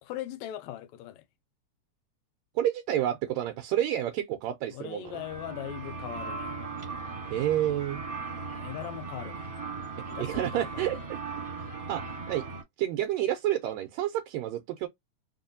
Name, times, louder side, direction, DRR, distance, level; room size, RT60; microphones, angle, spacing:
voice 1, 0.0-1.3 4.7-6.6 8.2-9.5 10.1-10.9, left 13 dB, 80° left, 1.8 m, -40 dB
voice 2, 2.6-5.1 7.3-8.0 10.2-11.2 11.9-12.5 12.8-14.9, right 12 dB, 80° right, 1.8 m, -29 dB
sound 1, 5.0-12.6, right 4 dB, 25° right, 1.3 m, -38 dB
4.1 x 3.0 x 2.5 m
omnidirectional pair, 3.4 m